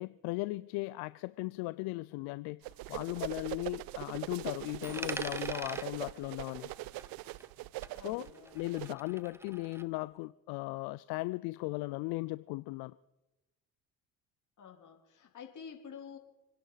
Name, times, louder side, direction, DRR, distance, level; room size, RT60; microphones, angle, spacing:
voice 1, 0.0-6.7 7.9-8.3 8.5-13.0, left 21 dB, 75° left, 0.5 m, -37 dB
sound 1, 2.6-8.9, right 19 dB, 65° right, 0.5 m, -41 dB
Coin (dropping), 4.8-7.6 7.8-9.8, right 1 dB, 5° right, 0.9 m, -45 dB
voice 2, 7.9-8.6 14.6-16.2, left 7 dB, 50° left, 3.5 m, -49 dB
27.5 x 10.5 x 4.0 m
supercardioid pair, 70°, 38 cm